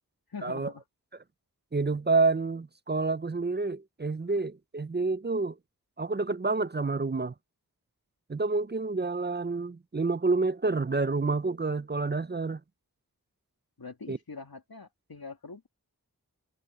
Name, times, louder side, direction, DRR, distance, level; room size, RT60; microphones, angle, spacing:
voice 1, 0.3-0.8 13.8-15.7, left 4 dB, 90° left, 2.4 m, -43 dB
voice 2, 1.7-5.6 6.0-7.3 8.3-12.6 14.1-14.2, right 3 dB, 30° right, 0.5 m, -28 dB
wide cardioid pair, 40°, 35 cm